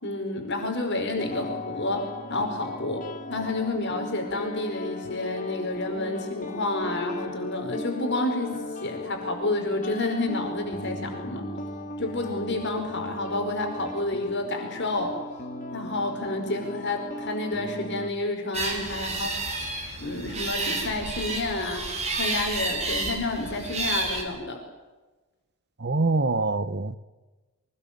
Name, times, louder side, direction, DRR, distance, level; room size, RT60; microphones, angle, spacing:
voice 1, 0.0-8.5 8.8-11.5 12.0-15.2 15.7-19.4 20.0-21.8 22.1-24.6, left 2 dB, 55° left, 5.0 m, -29 dB
sound 1, 1.2-18.1, left 2 dB, 35° left, 2.1 m, -37 dB
sound 2, 18.5-24.2, right 2 dB, 30° right, 6.8 m, -30 dB
voice 2, 25.8-27.0, right 3 dB, 50° right, 1.1 m, -24 dB
24.5 x 20.5 x 8.7 m
head